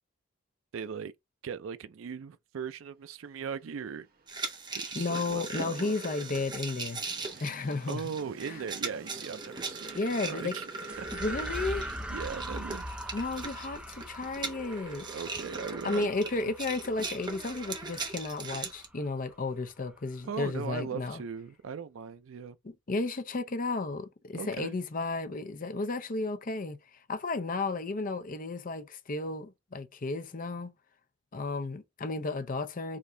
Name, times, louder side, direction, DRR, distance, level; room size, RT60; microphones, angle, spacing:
voice 1, 0.7-1.1 1.4-4.1 4.7-6.0 7.9-10.7 11.0-11.1 11.7-12.9 15.1-16.3 17.0-17.1 20.3-22.6 24.3-24.8, right 6 dB, 85° right, 0.4 m, -39 dB
Train, 3.4-19.2, right 3 dB, 50° right, 1.2 m, -55 dB
sound 1, 4.3-18.9, right 3 dB, 25° right, 1.0 m, -39 dB
voice 2, 4.9-7.0 7.4-8.1 8.4-8.5 9.9-10.5 11.1-11.9 13.1-15.1 15.8-21.2 22.6-26.8 27.1-30.7 31.3-33.0, left 3 dB, 45° left, 0.6 m, -33 dB
sound 2, 10.9-19.5, equal, 5° right, 0.6 m, -42 dB
5.0 x 2.7 x 3.8 m
head